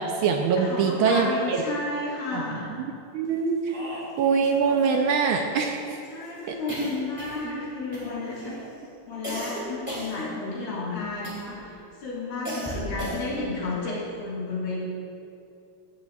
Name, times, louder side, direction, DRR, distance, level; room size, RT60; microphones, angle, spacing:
voice 1, 0.0-1.6 2.3-2.6 3.1-6.0 6.5-6.6, right 5 dB, 75° right, 3 dB, 1.3 m, -24 dB
voice 2, 0.6-2.7 6.1-8.5 9.0-11.7 12.0-14.8, left 3 dB, 65° left, -7 dB, 2.4 m, -32 dB
Speech, 3.5-5.4 5.7-6.6 8.0-8.7, equal, 35° right, 2.3 m, -41 dB
sound 1, 6.7-7.6 7.9-8.4 9.2-10.7 11.2-11.7 12.4-13.5, equal, 5° right, 2.1 m, -34 dB
15.5 x 8.4 x 2.3 m, 2.6 s
omnidirectional pair, 2.4 m